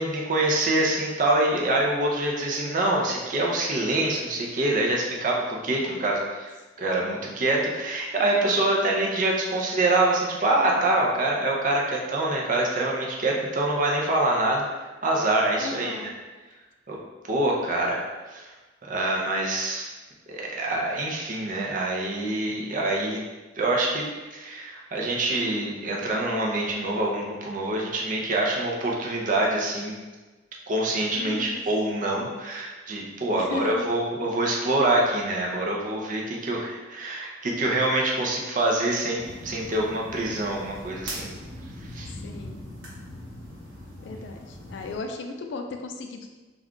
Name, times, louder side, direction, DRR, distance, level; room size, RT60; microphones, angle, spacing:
voice 1, 0.0-6.5 6.8-16.1 16.9-17.0 17.3-18.5 18.8-19.9 20.3-23.2 23.6-24.0 24.3-30.0 30.7-41.3 41.9-42.1, right 2 dB, 45° right, -1 dB, 0.5 m, -25 dB
voice 2, 5.7-6.1 15.6-16.1 31.1-31.6 33.3-33.8 42.2-42.6 44.0-46.3, left 3 dB, 70° left, 4 dB, 0.3 m, -36 dB
sound 1, 39.2-45.0, equal, 80° right, 1.1 m, -40 dB
2.3 x 2.3 x 3.6 m, 1.2 s
head